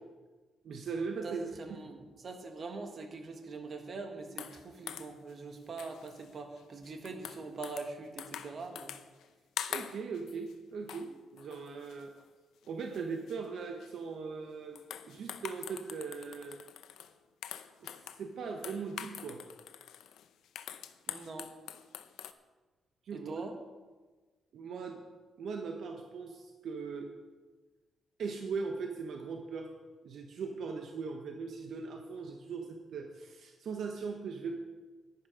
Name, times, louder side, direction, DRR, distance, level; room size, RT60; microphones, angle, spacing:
voice 1, 0.6-1.4 9.7-12.1 12.7-14.8 15.1-16.6 17.8-19.4 23.0-23.4 24.5-25.0 25.4-27.1 28.2-29.7 30.0-34.6, right 5 dB, 60° right, 3 dB, 1.0 m, -39 dB
voice 2, 1.2-8.9 21.1-21.5 23.1-23.5, right 3 dB, 40° right, 4 dB, 1.5 m, -43 dB
sound 1, 4.4-5.3 5.8-6.3 6.6-7.9 8.2-9.3 9.6-10.5 10.9-11.1 11.4-12.2 12.6-13.0 13.3-13.4 13.8-14.0 14.8-17.1 17.4-18.2 18.6-22.3, left 10 dB, 90° left, 0.6 m, -45 dB
11.0 x 10.5 x 5.0 m, 1.3 s
cardioid pair, 150°, 0 cm